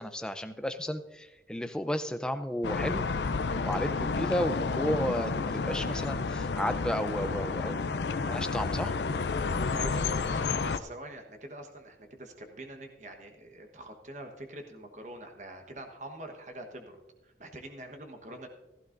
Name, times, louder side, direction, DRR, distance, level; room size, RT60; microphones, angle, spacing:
voice 1, 0.0-3.1 3.6-8.9, equal, 5° left, 9 dB, 0.5 m, -33 dB
sound 1, 2.6-10.8, left 4 dB, 80° left, 0.5 m, -30 dB
voice 2, 9.7-18.5, right 1 dB, 45° right, 4 dB, 1.2 m, -45 dB
15.5 x 14.0 x 2.6 m, 1.0 s
head